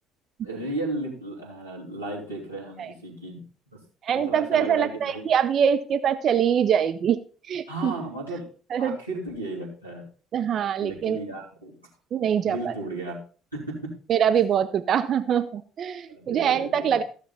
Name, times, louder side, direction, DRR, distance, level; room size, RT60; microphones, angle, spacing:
voice 1, 0.4-3.4 4.1-5.3 7.7-8.5 8.8-10.1 10.8-11.8 12.4-13.2 13.5-13.9 16.1-17.0, right 2 dB, 90° right, -6 dB, 2.9 m, -34 dB
voice 2, 4.0-7.2 7.5-7.9 8.7-9.0 10.3-11.2 12.1-12.7 14.1-17.0, right 8 dB, 45° right, 11 dB, 0.6 m, -24 dB
14.5 x 6.8 x 4.0 m, 0.39 s
figure-of-eight pair, 55°, 0 cm